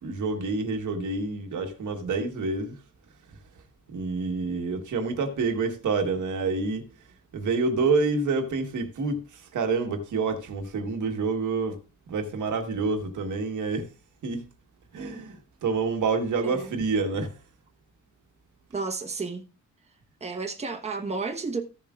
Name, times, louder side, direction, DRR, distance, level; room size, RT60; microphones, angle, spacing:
voice 1, 0.0-2.7 3.9-6.8 7.3-11.8 12.1-13.9 14.2-14.4 14.9-17.3, right 4 dB, 70° right, 1.4 m, -28 dB
voice 2, 18.7-19.4 20.2-21.6, right 4 dB, 20° right, 1.1 m, -32 dB
15.0 x 7.3 x 2.4 m
wide cardioid pair, 135°, 31 cm